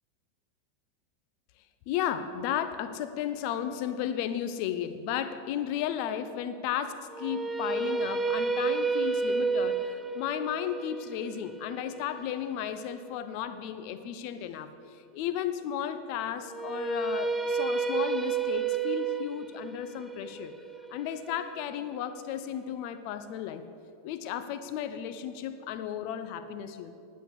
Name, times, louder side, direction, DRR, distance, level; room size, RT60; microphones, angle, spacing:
voice 1, 1.9-20.5 20.9-23.7 24.0-26.9, left 10 dB, 55° left, 11 dB, 0.7 m, -34 dB
sound 1, 7.1-13.2 16.5-22.5, right 5 dB, 15° right, 0.6 m, -31 dB
10.0 x 8.2 x 8.4 m, 2.7 s
hypercardioid pair, 120°, 0 cm